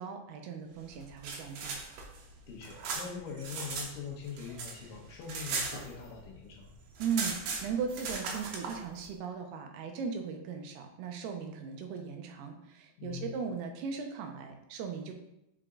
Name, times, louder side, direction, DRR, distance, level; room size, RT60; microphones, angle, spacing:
voice 1, 0.0-1.8 7.0-15.1, right 6 dB, 85° right, 4 dB, 2.7 m, -38 dB
sound 1, 1.0-3.9 4.2-6.3 6.6-6.7 6.9-8.8, right 4 dB, 70° right, 2.5 m, -37 dB
voice 2, 2.5-6.7 13.0-13.3, left 6 dB, 70° left, 0 dB, 2.2 m, -43 dB
6.7 x 5.0 x 3.7 m, 0.86 s
omnidirectional pair, 4.5 m